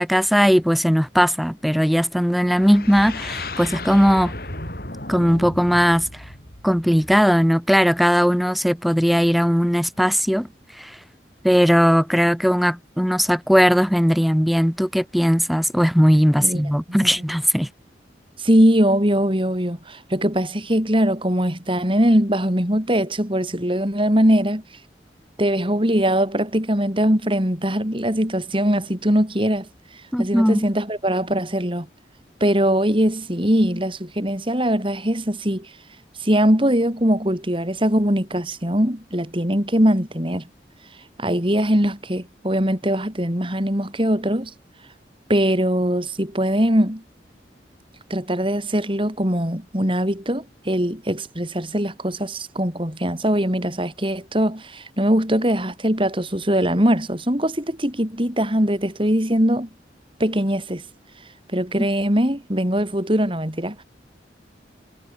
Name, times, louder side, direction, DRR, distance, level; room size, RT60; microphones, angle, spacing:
voice 1, 0.0-4.3 5.1-6.1 6.6-10.5 10.8-11.0 11.4-17.7 30.1-30.6 61.8-61.9, equal, ahead, 1.5 m, -18 dB
sound 1, 2.6-7.4, left 2 dB, 55° left, 8.0 m, -34 dB
voice 2, 18.4-24.6 25.4-29.7 30.2-31.9 32.4-35.7 36.2-40.4 41.2-44.5 45.3-47.0 48.1-59.7 60.2-60.8 61.5-63.8, equal, 30° right, 5.6 m, -21 dB
head